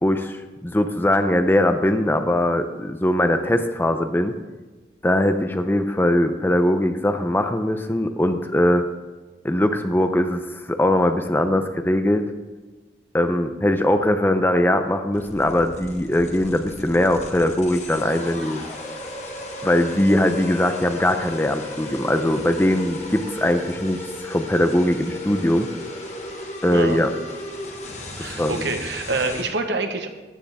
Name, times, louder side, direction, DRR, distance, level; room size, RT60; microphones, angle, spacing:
voice 1, 0.0-4.3 5.0-8.8 9.4-12.3 13.1-18.6 19.6-25.7 26.6-27.1 28.2-28.7, left 1 dB, 10° left, 7 dB, 0.6 m, -21 dB
sound 1, 15.1-29.4, left 1 dB, 40° left, 1.6 m, -35 dB
voice 2, 28.2-30.1, right 3 dB, 85° right, 6 dB, 1.2 m, -26 dB
14.5 x 9.6 x 3.5 m, 1.3 s
head